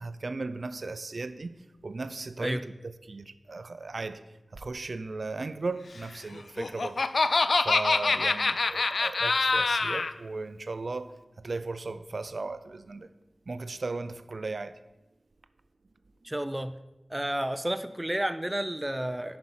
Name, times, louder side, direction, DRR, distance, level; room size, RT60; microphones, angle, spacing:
voice 1, 0.0-1.6 1.8-4.2 4.5-7.0 7.6-13.1 13.5-14.8, right 3 dB, 65° right, 0.5 m, -36 dB
Laughter, 6.4-10.1, left 3 dB, 75° left, 0.4 m, -25 dB
voice 2, 16.2-16.7 17.1-19.4, right 1 dB, 15° right, 0.6 m, -31 dB
10.5 x 5.4 x 5.7 m
cardioid pair, 45°, 0 cm